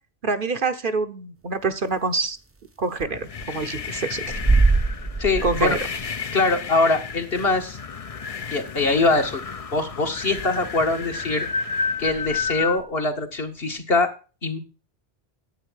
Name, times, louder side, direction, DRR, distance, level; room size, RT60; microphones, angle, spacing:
voice 1, 0.2-2.4 2.8-4.4 5.4-5.8, right 3 dB, 55° right, 8 dB, 1.1 m, -26 dB
sound 1, 2.2-2.3 2.6-2.7 3.0-3.1 3.4-3.6 4.2-6.1 6.7-6.8 7.6-7.7 8.7-8.8 9.0-9.2 9.6-9.8 10.4-10.5 10.8-11.0 11.9-12.9, right 3 dB, 15° right, 0.6 m, -24 dB
sound 2, 3.1-12.8, left 5 dB, 40° left, 0.7 m, -32 dB
voice 2, 5.2-5.8 6.3-7.8 8.5-9.4 9.7-11.5 12.0-14.1 14.4-14.6, left 3 dB, 65° left, 3 dB, 2.1 m, -23 dB
11.0 x 8.3 x 6.3 m, 0.35 s
omnidirectional pair, 1.1 m